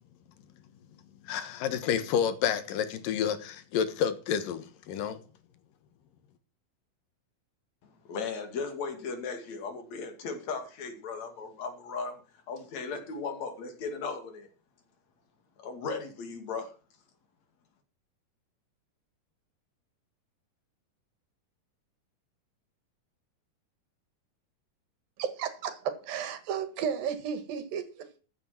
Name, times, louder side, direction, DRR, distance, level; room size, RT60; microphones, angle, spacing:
voice 1, 1.2-5.2, left 8 dB, 80° left, 2.9 m, -29 dB
voice 2, 8.1-12.2 12.5-14.5 15.6-16.7, left 4 dB, 55° left, 3.6 m, -36 dB
voice 3, 25.2-28.2, right 7 dB, 90° right, 3.5 m, -33 dB
14.5 x 8.5 x 5.9 m
omnidirectional pair, 4.0 m